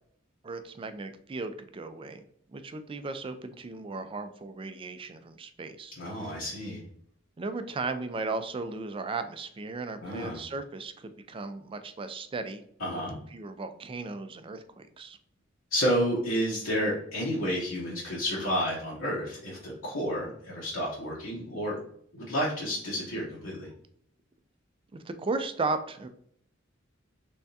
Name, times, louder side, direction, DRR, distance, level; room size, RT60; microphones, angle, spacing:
voice 1, 0.4-2.2 2.5-6.3 7.4-12.6 12.9-13.0 13.3-15.2 25.0-26.1, right 3 dB, 25° right, 9 dB, 0.3 m, -36 dB
voice 2, 6.0-6.8 10.0-10.4 12.8-13.2 15.7-21.8 22.1-23.7, equal, 75° left, -5 dB, 1.0 m, -30 dB
3.4 x 3.4 x 2.7 m, 0.67 s
head